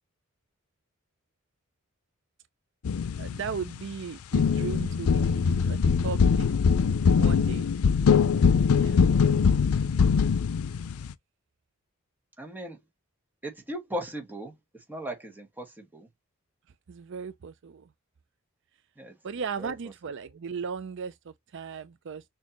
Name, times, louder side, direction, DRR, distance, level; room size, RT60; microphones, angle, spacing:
sound 1, 2.8-3.9 4.3-11.1, left 6 dB, 85° left, 0.5 m, -23 dB
voice 1, 3.2-6.5 7.2-7.7 8.7-9.0 16.9-17.9 19.2-22.2, right 6 dB, 60° right, 0.5 m, -37 dB
voice 2, 12.4-12.8 13.4-16.1 19.0-19.2 19.6-19.7, equal, 10° right, 1.5 m, -38 dB
6.4 x 2.8 x 2.9 m
head